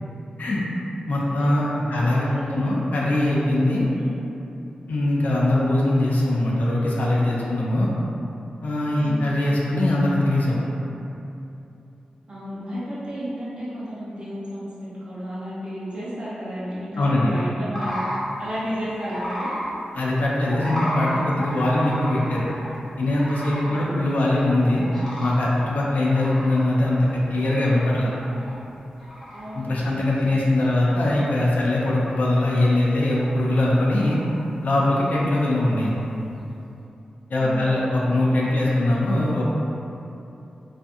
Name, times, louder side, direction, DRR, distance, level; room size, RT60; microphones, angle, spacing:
voice 1, 1.1-3.9 4.9-7.9 8.6-10.6 17.0-17.3 19.9-22.5 23.0-24.8 25.2-28.1 29.5-34.2 34.6-35.9 37.3-39.4, left 1 dB, 75° left, -5 dB, 0.5 m, -21 dB
voice 2, 1.9-2.7 3.9-4.2 9.0-9.4 12.3-19.5 23.6-24.0 29.3-30.3 37.3-37.7, equal, 40° right, -10 dB, 0.8 m, -33 dB
sound 1, 17.7-18.2 19.0-19.7 20.5-22.8 23.2-23.8 24.2-24.3 24.8-25.4 26.0-27.9 28.2-28.6 29.0-29.5 30.0-30.1 30.6-31.4 32.0-32.7 33.0-33.5 33.8-34.4 35.5-36.1, equal, 10° left, 0.8 m, -33 dB
2.4 x 2.4 x 2.6 m, 2.8 s
wide cardioid pair, 80°, 3 cm